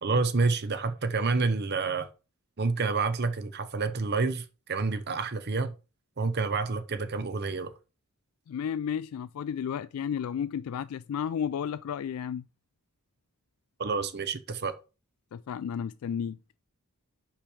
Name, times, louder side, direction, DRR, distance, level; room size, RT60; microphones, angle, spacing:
voice 1, 0.0-2.1 2.6-5.7 6.2-7.7 13.8-14.8, right 4 dB, 45° right, 0.8 m, -28 dB
voice 2, 8.5-12.4 15.3-16.4, left 8 dB, 70° left, 0.3 m, -32 dB
5.7 x 5.1 x 6.3 m
head